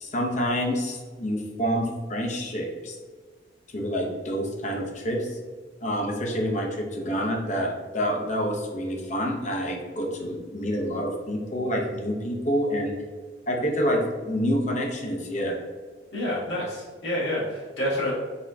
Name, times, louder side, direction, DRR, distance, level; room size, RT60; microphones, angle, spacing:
voice 1, 0.0-3.0 3.7-5.4 5.8-12.9 13.5-15.6, equal, 45° left, 0 dB, 0.8 m, -27 dB
voice 2, 16.1-18.1, left 1 dB, 85° left, -7 dB, 1.3 m, -28 dB
4.2 x 3.5 x 2.8 m, 1.5 s
head